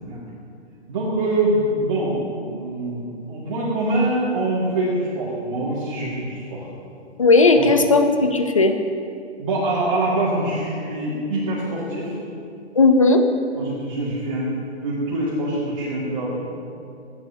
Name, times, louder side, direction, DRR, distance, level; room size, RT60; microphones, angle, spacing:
voice 1, 0.9-6.7 7.6-7.7 9.4-12.1 13.6-14.5 14.8-16.5, right 1 dB, 30° right, -9 dB, 2.1 m, -24 dB
voice 2, 7.2-8.7 12.8-13.2, left 3 dB, 30° left, 6 dB, 0.6 m, -15 dB
26.0 x 9.8 x 2.8 m, 2.5 s
hypercardioid pair, 175°, 35 cm